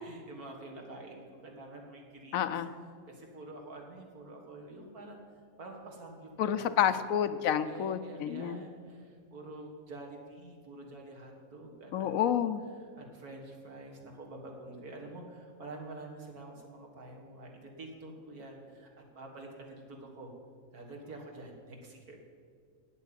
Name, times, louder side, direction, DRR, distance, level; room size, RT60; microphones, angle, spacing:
voice 1, 0.0-2.5 3.1-5.2 5.6-7.0 7.6-12.3 13.0-20.3 20.7-22.2, right 2 dB, 80° right, 1 dB, 2.3 m, -47 dB
voice 2, 2.3-2.7 6.4-8.7 11.9-12.6, left 9 dB, 70° left, 11 dB, 0.9 m, -29 dB
8.7 x 8.3 x 8.8 m, 2.1 s
omnidirectional pair, 1.6 m